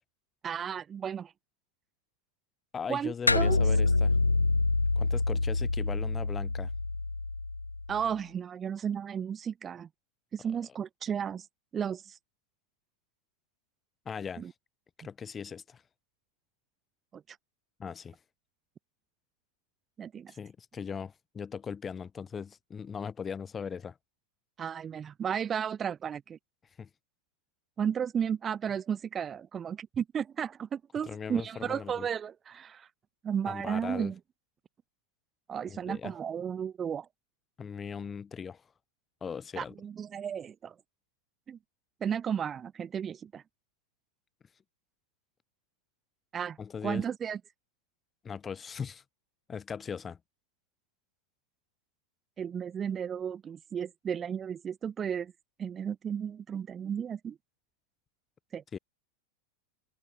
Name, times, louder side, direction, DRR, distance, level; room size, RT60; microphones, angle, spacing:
voice 1, 0.4-1.3 2.9-3.6 7.9-9.9 10.3-11.5 11.7-12.2 14.4-14.5 17.1-17.4 20.0-20.3 24.6-26.4 27.8-32.9 33.2-34.1 35.5-37.1 39.6-40.7 41.5-41.6 42.0-43.4 46.3-46.6 46.8-47.4 52.4-55.3 55.6-57.4 58.5-58.6, right 8 dB, 25° right, 6.4 m, -34 dB
voice 2, 2.7-4.2 5.0-6.7 14.0-14.5 15.0-15.8 17.8-18.2 20.3-24.0 26.8-26.9 31.0-32.1 33.5-34.1 35.7-36.1 37.6-38.6 39.2-39.7 46.6-47.0 48.2-49.0 49.5-50.2 58.7-58.8, left 6 dB, 20° left, 7.8 m, -39 dB
sound 1, 3.3-8.0, left 3 dB, 80° left, 5.7 m, -27 dB
figure-of-eight pair, 90°, 0 cm